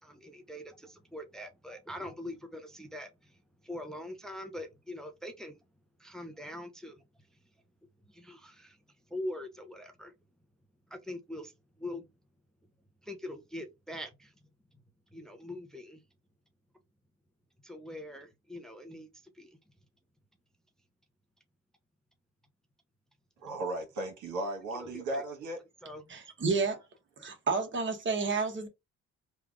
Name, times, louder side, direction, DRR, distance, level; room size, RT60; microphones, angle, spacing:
voice 1, 0.0-5.5 6.0-7.0 8.1-8.8 9.1-10.1 10.9-11.5 11.8-12.0 13.0-14.3 15.1-16.0 17.6-19.1 19.3-19.6 24.8-25.2 25.8-26.2, left 1 dB, ahead, 0.6 m, -43 dB
voice 2, 23.4-25.6, right 2 dB, 75° right, 1.5 m, -36 dB
voice 3, 26.1-26.8 27.2-28.7, right 4 dB, 40° right, 1.2 m, -30 dB
3.3 x 2.3 x 3.5 m
cardioid pair, 90°, 30 cm